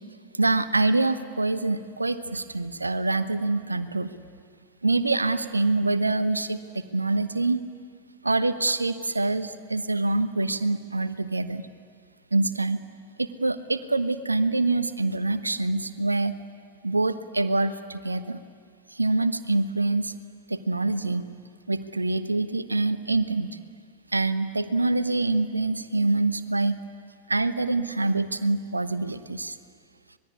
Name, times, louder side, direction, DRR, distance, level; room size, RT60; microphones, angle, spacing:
voice 1, 0.4-4.1 4.8-7.6 8.2-11.7 12.3-12.8 13.2-16.3 16.8-18.4 18.9-20.1 20.5-21.3 21.7-23.5 24.1-26.8 27.3-29.6, right 2 dB, 80° right, 12 dB, 1.1 m, -25 dB
25.5 x 21.0 x 9.7 m, 2.1 s
figure-of-eight pair, 90°, 0 cm